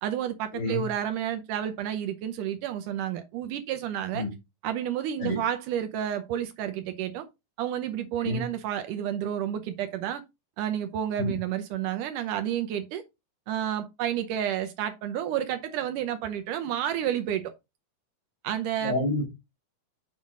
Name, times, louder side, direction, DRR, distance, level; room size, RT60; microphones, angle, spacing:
voice 1, 0.0-4.3 4.6-7.3 7.6-10.2 10.6-13.0 13.5-17.5 18.4-18.9, right 10 dB, 75° right, 2.1 m, -30 dB
voice 2, 0.5-0.9 4.1-4.3 5.2-5.4 8.2-8.5 11.2-11.3 18.8-19.3, left 2 dB, 35° left, 2.5 m, -28 dB
7.3 x 5.6 x 3.8 m
omnidirectional pair, 4.0 m